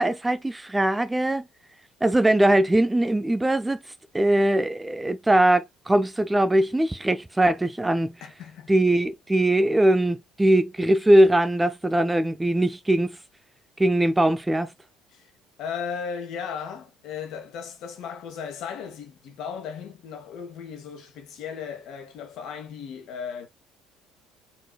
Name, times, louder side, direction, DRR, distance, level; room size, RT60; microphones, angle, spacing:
voice 1, 0.0-1.4 2.0-3.8 4.1-8.1 8.7-13.2 13.8-14.7, right 1 dB, 10° right, 0.6 m, -21 dB
voice 2, 8.2-8.7 15.1-15.3 15.6-23.5, left 6 dB, 60° left, 1.5 m, -36 dB
4.6 x 4.5 x 2.3 m
figure-of-eight pair, 55°, 0 cm